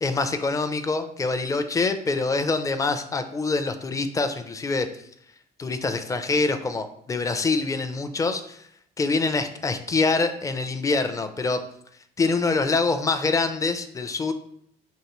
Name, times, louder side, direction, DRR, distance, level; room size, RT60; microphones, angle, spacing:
voice 1, 0.0-4.9 5.6-8.6 9.0-11.6 12.2-14.3, left 3 dB, 20° left, 9 dB, 0.4 m, -25 dB
5.4 x 3.1 x 3.0 m, 0.69 s
cardioid pair, 110°, 17 cm